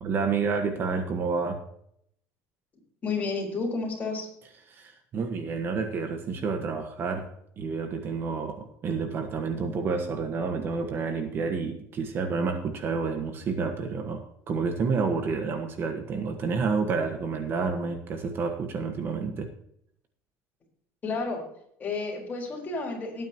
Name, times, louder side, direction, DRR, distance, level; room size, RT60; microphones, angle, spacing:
voice 1, 0.0-1.6 4.7-7.3 7.6-19.5, right 4 dB, 35° right, 6 dB, 1.4 m, -29 dB
voice 2, 3.0-4.3 21.0-21.4 21.8-23.3, left 4 dB, 25° left, -1 dB, 4.4 m, -31 dB
18.0 x 9.2 x 3.0 m, 0.70 s
cardioid pair, 140°, 6 cm